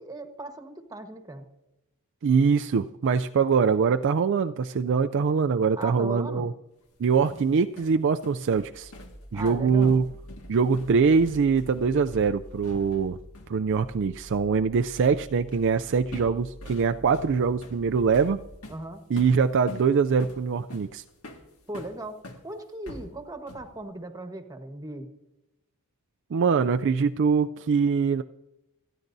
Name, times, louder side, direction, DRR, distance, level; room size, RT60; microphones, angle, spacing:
voice 1, 0.0-1.4 5.8-6.5 9.3-10.0 18.7-19.0 21.7-25.1, right 2 dB, 15° right, 6 dB, 1.3 m, -38 dB
voice 2, 2.2-6.5 7.0-8.9 9.3-10.0 10.5-13.2 13.5-18.4 19.1-21.0 26.3-28.2, right 5 dB, 55° right, 8 dB, 0.4 m, -23 dB
sound 1, 6.9-13.1 13.4-13.6 15.5-15.8 16.1-22.5 22.9-23.8, left 1 dB, 70° left, 1.9 m, -45 dB
sound 2, 8.5-18.6, equal, 25° left, 6.2 m, -47 dB
27.5 x 10.0 x 2.7 m, 0.93 s
head